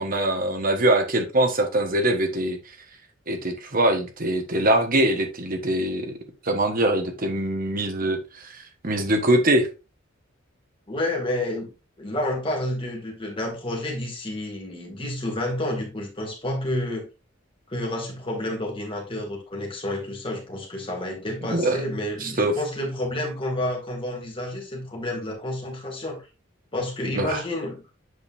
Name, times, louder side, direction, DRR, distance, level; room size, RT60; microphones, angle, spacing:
voice 1, 0.0-2.6 3.3-6.1 6.4-9.7 21.5-21.8 22.2-22.5 27.1-27.4, right 1 dB, 45° right, 1.3 m, -23 dB
voice 2, 10.9-11.7 12.0-17.1 17.7-26.2 26.7-27.9, left 1 dB, 25° left, 2.2 m, -30 dB
8.0 x 5.2 x 2.6 m
head